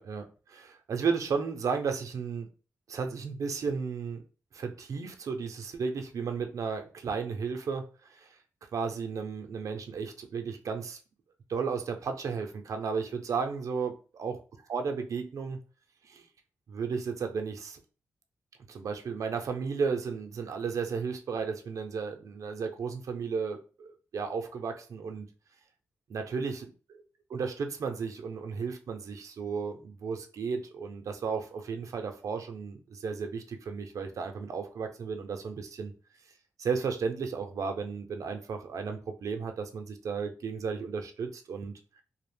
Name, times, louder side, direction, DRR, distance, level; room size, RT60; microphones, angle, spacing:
voice 1, 0.0-2.5 2.9-4.2 4.5-7.8 8.1-8.4 8.7-11.0 11.5-14.4 14.7-15.6 16.0-16.3 16.7-17.8 18.7-25.3 26.1-26.7 27.3-35.9 36.6-41.7, right 5 dB, 70° right, 5 dB, 0.5 m, -34 dB
2.4 x 2.0 x 3.2 m, 0.36 s
cardioid pair, 80°, 6 cm